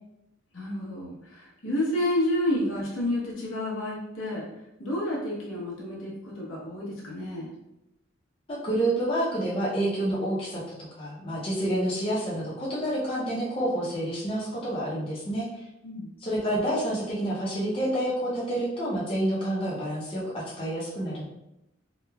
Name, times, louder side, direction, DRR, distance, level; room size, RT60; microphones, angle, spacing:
voice 1, 0.5-4.5 4.8-7.5 15.8-16.1, left 1 dB, 85° left, -5 dB, 0.9 m, -30 dB
voice 2, 8.5-10.6 11.0-15.6 16.2-21.2, right 1 dB, 30° left, -6 dB, 0.6 m, -28 dB
3.0 x 2.1 x 2.2 m, 0.87 s
head